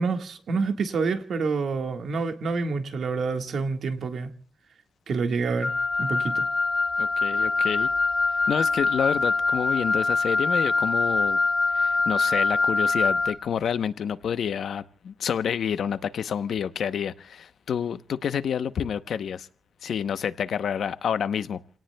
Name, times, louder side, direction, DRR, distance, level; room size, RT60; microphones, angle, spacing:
voice 1, 0.0-4.3 5.1-5.7 6.0-6.4, right 4 dB, 65° right, 1.6 m, -27 dB
Wind instrument woodwind instrument, 5.6-13.4, left 3 dB, 25° left, 1.6 m, -24 dB
voice 2, 7.0-7.9 8.5-11.4 11.7-19.5 19.8-21.6, left 8 dB, 70° left, 0.8 m, -28 dB
29.5 x 18.0 x 2.2 m
wide cardioid pair, 130°, 0 cm